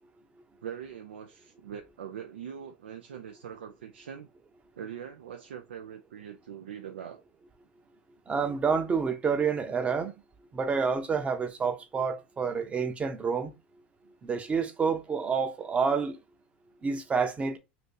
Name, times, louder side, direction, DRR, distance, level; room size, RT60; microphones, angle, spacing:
voice 1, 0.6-4.3 4.8-7.2, right 8 dB, 85° right, 0.4 m, -42 dB
voice 2, 8.3-10.1 10.5-13.5 14.2-16.2 16.8-17.6, right 5 dB, 20° right, 0.7 m, -28 dB
2.7 x 2.6 x 3.8 m
hypercardioid pair, 100°, 6 cm